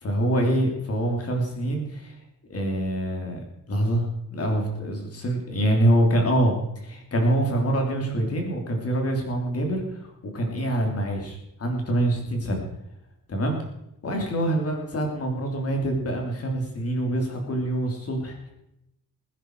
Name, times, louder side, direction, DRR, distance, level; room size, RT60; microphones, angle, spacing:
voice 1, 0.0-2.2 2.5-3.4 3.7-10.0 10.3-12.6 13.3-13.6 14.0-18.5, right 1 dB, 45° left, 2 dB, 3.5 m, -25 dB
21.5 x 9.8 x 4.8 m, 0.84 s
wide cardioid pair, 160°, 34 cm